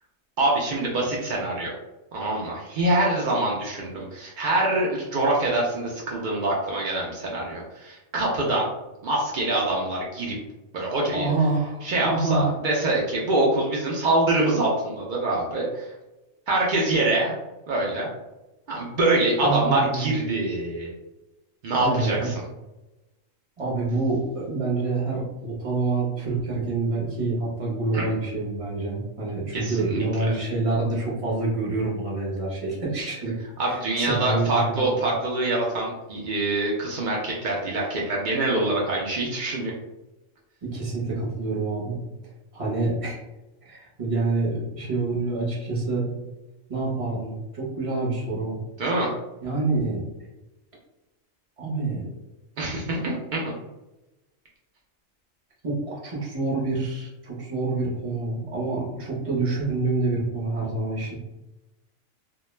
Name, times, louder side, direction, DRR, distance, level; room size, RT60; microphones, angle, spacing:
voice 1, 0.4-1.7 2.1-8.7 9.0-10.4 10.7-11.3 11.8-15.8 16.5-17.4 17.7-18.1 18.7-20.9 21.6-22.3 27.9-28.1 29.5-30.3 33.6-39.7 48.8-49.1 52.6-53.6, right 2 dB, 80° right, -3 dB, 0.4 m, -25 dB
voice 2, 11.1-12.5 19.4-20.1 21.8-22.3 23.6-33.3 33.7-35.1 40.6-42.0 42.5-43.2 43.6-46.1 46.7-48.6 49.4-50.0 51.6-52.0 55.6-61.1, right 3 dB, 35° right, -4 dB, 0.6 m, -27 dB
2.3 x 2.1 x 3.1 m, 1.0 s
omnidirectional pair, 1.4 m